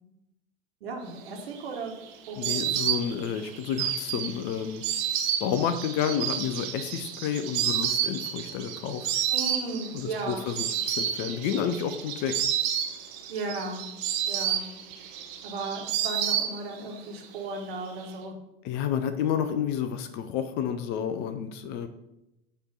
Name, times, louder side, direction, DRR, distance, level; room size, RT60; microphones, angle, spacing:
voice 1, 0.8-1.9 2.3-2.6 9.3-10.5 13.3-13.8 14.3-14.6 15.4-18.3, right 3 dB, 60° right, 2 dB, 1.3 m, -35 dB
Insect, 1.3-17.0 17.2-18.1, right 9 dB, 45° right, 0.8 m, -30 dB
voice 2, 2.4-4.8 5.4-9.1 9.9-12.4 18.6-21.9, left 8 dB, 30° left, 9 dB, 0.4 m, -30 dB
6.7 x 3.1 x 5.6 m, 0.91 s
figure-of-eight pair, 80°, 33 cm